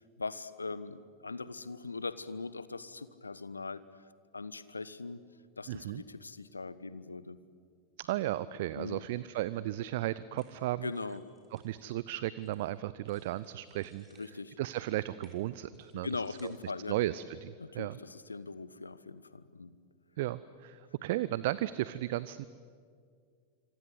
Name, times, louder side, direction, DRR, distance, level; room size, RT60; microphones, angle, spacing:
voice 1, 0.2-3.8 4.3-5.2 5.6-7.4 8.7-9.0 10.8-11.2 14.2-14.5 16.0-17.0 17.6-19.7, left 3 dB, 80° left, 16 dB, 1.0 m, -40 dB
voice 2, 5.7-6.0 8.0-10.9 11.5-14.1 14.6-16.1 16.4-18.0 20.2-22.5, right 15 dB, 50° right, 17 dB, 0.6 m, -35 dB
sound 1, 10.4-12.7 13.0-16.6, right 3 dB, 15° right, 5.6 m, -66 dB
26.5 x 26.0 x 8.1 m, 2.1 s
figure-of-eight pair, 90°, 0 cm